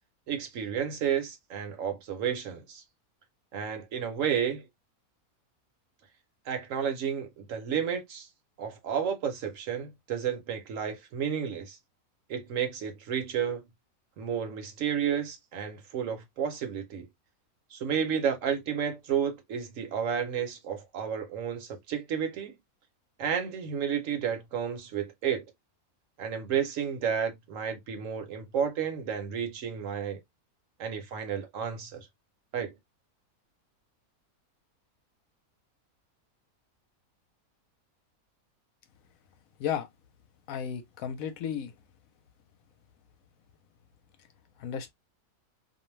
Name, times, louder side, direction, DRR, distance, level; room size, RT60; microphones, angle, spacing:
voice 1, 0.3-2.8 3.5-4.6 6.5-8.3 8.6-11.8 12.3-13.6 14.2-17.1 17.7-22.5 23.2-25.5 26.2-30.2 30.8-32.1 32.5-32.7, right 8 dB, 65° right, 1.0 m, -31 dB
voice 2, 40.5-41.7 44.6-44.9, left 8 dB, 75° left, 1.0 m, -33 dB
2.6 x 2.1 x 3.0 m
omnidirectional pair, 1.6 m